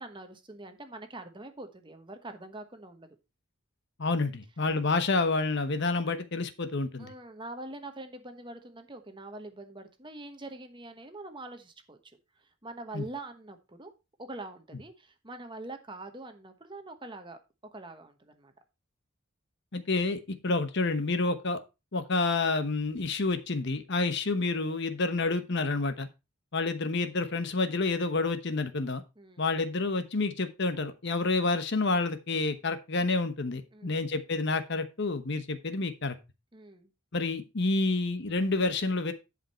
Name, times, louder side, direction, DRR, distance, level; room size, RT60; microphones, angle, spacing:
voice 1, 0.0-3.1 7.0-12.0 12.4-13.9 14.2-17.4 17.7-18.5 29.2-29.4 33.7-34.0 36.5-36.9, right 2 dB, 25° right, 1.1 m, -44 dB
voice 2, 4.0-7.1 12.9-13.0 19.7-21.6 21.9-26.1 26.5-29.0 29.4-36.2 37.1-39.1, left 3 dB, 55° left, 1.0 m, -29 dB
11.0 x 5.2 x 4.3 m
head